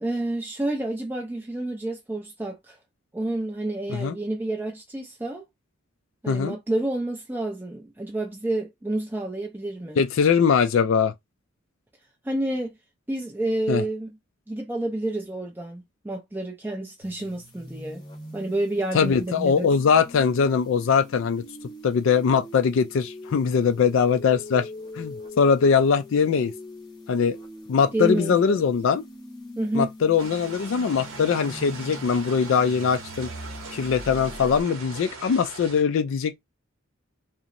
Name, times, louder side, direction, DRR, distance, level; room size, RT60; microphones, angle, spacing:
voice 1, 0.0-2.8 3.1-5.4 6.2-10.0 12.2-12.7 13.1-14.1 14.5-18.0 18.3-19.7 27.9-28.6 29.6-29.9, right 1 dB, 10° right, 0.4 m, -29 dB
voice 2, 10.0-11.1 13.7-13.8 18.9-21.4 21.8-24.7 25.0-26.5 27.1-27.4 27.7-29.0 29.7-33.3 33.7-36.4, left 6 dB, 65° left, 0.3 m, -21 dB
sound 1, 17.0-34.6, left 1 dB, 20° left, 0.8 m, -42 dB
sound 2, 30.2-35.8, right 4 dB, 85° right, 0.8 m, -40 dB
2.8 x 2.0 x 2.5 m
head